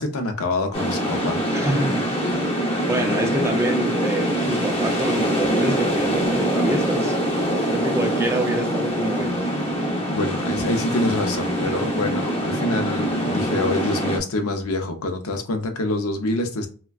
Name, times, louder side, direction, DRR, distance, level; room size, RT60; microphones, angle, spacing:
voice 1, 0.0-1.7 10.1-16.7, left 2 dB, 70° left, 0.6 m, -26 dB
sound 1, 0.7-14.2, equal, 25° left, 0.7 m, -24 dB
voice 2, 1.5-2.1 2.9-7.2 7.7-9.5 11.7-11.9, right 1 dB, 10° right, 0.4 m, -26 dB
3.4 x 2.1 x 2.3 m
head